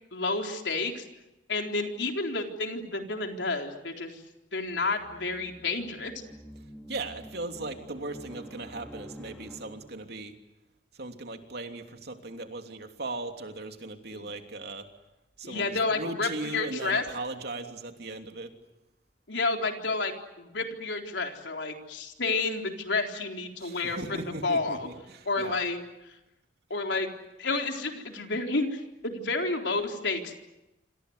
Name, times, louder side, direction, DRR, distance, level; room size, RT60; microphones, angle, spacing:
voice 1, 0.1-1.0 1.5-4.2 4.5-6.1 14.1-14.2 15.4-17.0 19.3-24.8 25.3-25.8 26.7-27.1 27.4-30.4, left 3 dB, 85° left, 3 dB, 4.0 m, -30 dB
sound 1, 4.6-10.1, equal, 5° left, 4.0 m, -48 dB
voice 2, 6.6-10.4 10.9-14.9 15.4-18.6 23.6-25.6, right 2 dB, 65° right, 5 dB, 3.1 m, -38 dB
27.0 x 27.0 x 8.1 m, 0.95 s
head